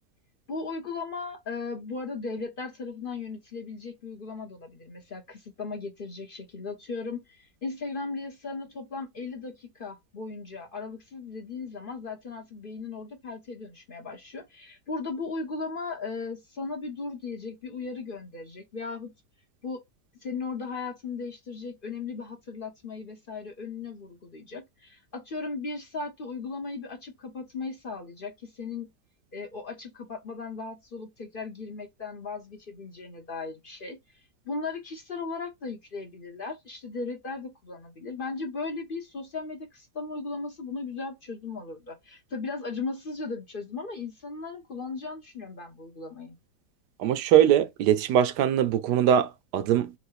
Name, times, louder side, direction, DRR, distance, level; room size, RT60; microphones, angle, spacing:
voice 1, 0.5-19.1 19.6-19.8 20.2-28.9 29.3-34.0 34.4-46.4, left 4 dB, 50° left, 0.7 m, -37 dB
voice 2, 47.0-49.9, right 10 dB, 80° right, 1.2 m, -22 dB
4.0 x 2.6 x 4.5 m
omnidirectional pair, 1.8 m